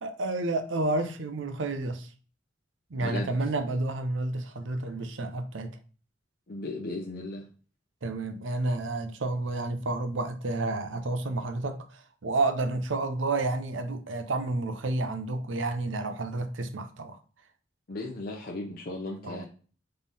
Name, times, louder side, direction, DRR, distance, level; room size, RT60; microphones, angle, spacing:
voice 1, 0.0-2.1 2.9-5.7 8.0-17.2 19.2-19.5, right 2 dB, 85° right, 0.6 m, -30 dB
voice 2, 3.0-3.3 4.7-4.8 6.5-7.5 17.9-19.5, left 2 dB, 50° left, 0.6 m, -36 dB
3.7 x 3.3 x 4.0 m
head